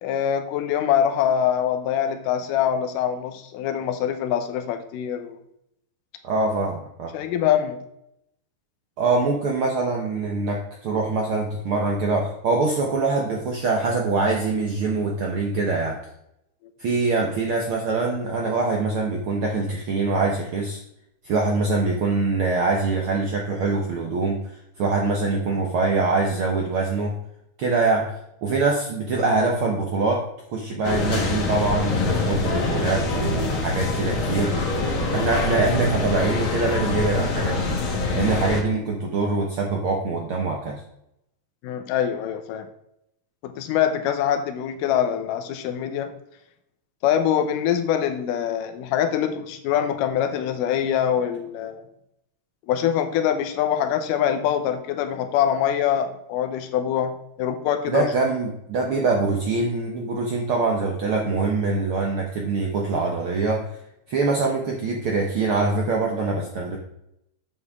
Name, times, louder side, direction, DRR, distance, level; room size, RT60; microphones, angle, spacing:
voice 1, 0.0-5.4 7.1-7.8 41.6-42.7 43.4-46.1 47.0-51.8 52.7-58.1, left 9 dB, 85° left, 7 dB, 2.4 m, -24 dB
voice 2, 6.2-7.1 9.0-16.0 16.8-20.8 21.2-24.4 24.8-27.2 27.6-28.1 28.4-34.6 35.1-37.8 38.1-40.8 57.9-63.7 64.1-66.8, right 3 dB, 70° right, 0 dB, 1.3 m, -24 dB
sound 1, 30.8-38.6, left 3 dB, 65° left, 2.6 m, -24 dB
8.4 x 7.2 x 3.5 m, 0.79 s
omnidirectional pair, 3.7 m